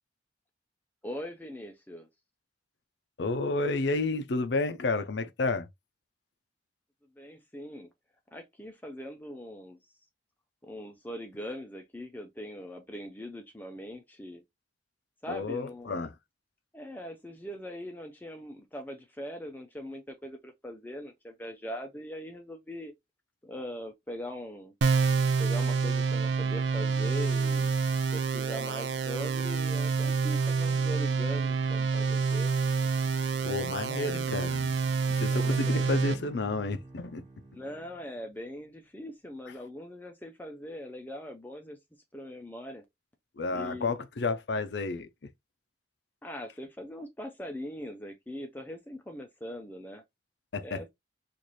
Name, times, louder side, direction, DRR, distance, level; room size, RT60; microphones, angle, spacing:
voice 1, 1.0-2.1 7.2-7.9 8.3-9.8 10.6-14.4 15.2-16.1 16.7-22.9 23.4-24.7 25.4-27.7 28.1-32.5 33.9-34.1 35.3-36.0 37.5-41.8 42.1-42.8 43.5-43.9 46.2-50.0 50.6-50.9, equal, 10° left, 0.5 m, -41 dB
voice 2, 3.2-5.7 15.3-16.1 33.4-34.7 35.1-37.2 43.4-45.1 50.5-50.9, left 3 dB, 65° left, 0.5 m, -31 dB
sound 1, 24.8-36.1, right 5 dB, 70° right, 0.5 m, -28 dB
Bowed string instrument, 34.8-38.4, right 2 dB, 45° right, 1.3 m, -50 dB
3.1 x 2.5 x 4.0 m
head